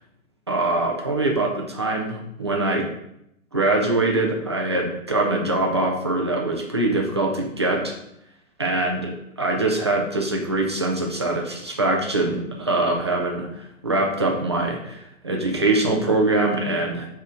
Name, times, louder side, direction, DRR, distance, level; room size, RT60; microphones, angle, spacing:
voice 1, 0.5-2.9 3.5-7.9 8.6-13.5 13.8-17.1, right 2 dB, 20° right, 0 dB, 0.5 m, -23 dB
8.0 x 4.3 x 4.9 m, 0.80 s
hypercardioid pair, 175°, 42 cm